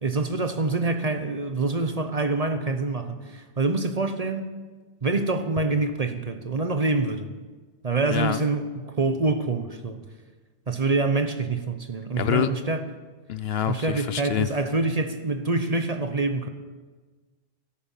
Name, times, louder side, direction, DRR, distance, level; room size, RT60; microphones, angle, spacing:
voice 1, 0.0-4.5 5.0-7.3 7.8-10.1 10.7-12.8 13.7-16.5, right 3 dB, 35° right, 8 dB, 0.9 m, -26 dB
voice 2, 12.2-12.5 13.3-14.5, left 10 dB, 65° left, 13 dB, 0.8 m, -26 dB
13.0 x 11.5 x 7.3 m, 1.3 s
omnidirectional pair, 1.2 m